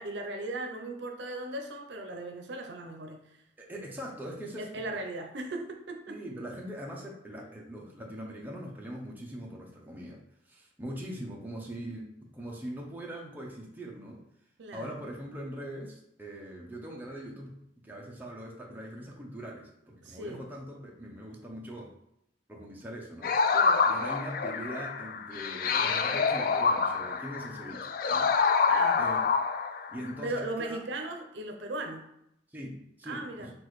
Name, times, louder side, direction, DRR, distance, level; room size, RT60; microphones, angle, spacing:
voice 1, 0.0-3.4 4.6-6.2 14.6-14.9 20.0-20.4 23.5-23.9 28.7-29.0 30.2-32.0 33.0-33.5, right 2 dB, 75° right, 3 dB, 0.6 m, -37 dB
voice 2, 3.6-5.0 6.1-10.2 10.5-14.2 14.7-17.5 17.8-21.9 22.5-23.3 23.9-28.3 29.0-29.2 29.9-30.8 32.5-33.5, equal, 10° right, -2 dB, 0.7 m, -41 dB
sound 1, 23.2-30.1, left 5 dB, 50° left, 0.3 m, -27 dB
6.0 x 2.6 x 3.1 m, 0.78 s
head